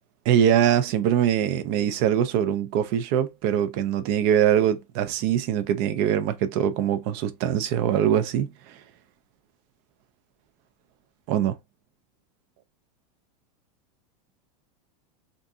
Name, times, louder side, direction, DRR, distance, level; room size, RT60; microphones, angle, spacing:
voice 1, 0.3-8.7 11.3-11.6, right 10 dB, 50° right, 0.4 m, -23 dB
2.5 x 2.3 x 2.6 m
supercardioid pair, 135°, 20 cm